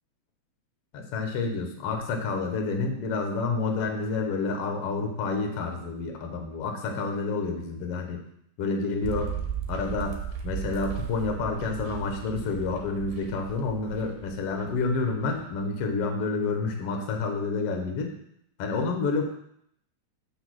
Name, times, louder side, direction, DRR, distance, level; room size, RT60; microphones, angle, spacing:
voice 1, 0.9-8.2 8.6-9.3 9.7-10.2 10.4-18.1 18.6-19.2, left 4 dB, 70° left, 3 dB, 1.4 m, -29 dB
sound 1, 9.0-15.5 15.8-15.9, right 8 dB, 70° right, 2.5 m, -36 dB
6.3 x 6.1 x 6.3 m, 0.72 s
omnidirectional pair, 4.4 m